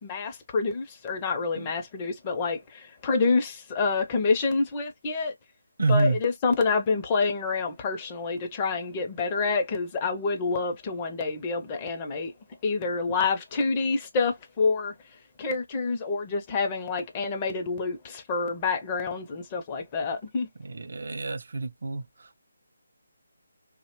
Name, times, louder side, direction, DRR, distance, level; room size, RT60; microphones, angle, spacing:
voice 1, 0.0-5.3 5.9-12.3 12.6-14.9 15.4-20.5, left 4 dB, 20° left, 0.4 m, -27 dB
voice 2, 5.8-6.2 20.6-22.0, right 3 dB, 65° right, 0.3 m, -27 dB
2.7 x 2.1 x 2.9 m
hypercardioid pair, 165°, 0 cm